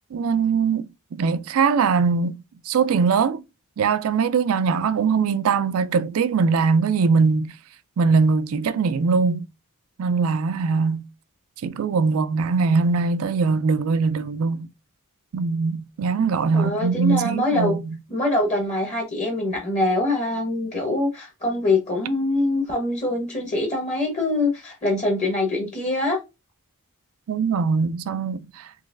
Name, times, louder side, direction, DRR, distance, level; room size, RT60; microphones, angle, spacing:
voice 1, 0.1-2.4 2.7-3.4 3.8-7.5 8.0-9.5 10.0-11.1 11.6-14.7 15.3-18.0 27.3-28.7, right 5 dB, 70° right, 0.4 m, -21 dB
voice 2, 16.5-17.8 18.1-26.2, left 2 dB, 30° left, 1.0 m, -24 dB
3.9 x 3.0 x 2.5 m
head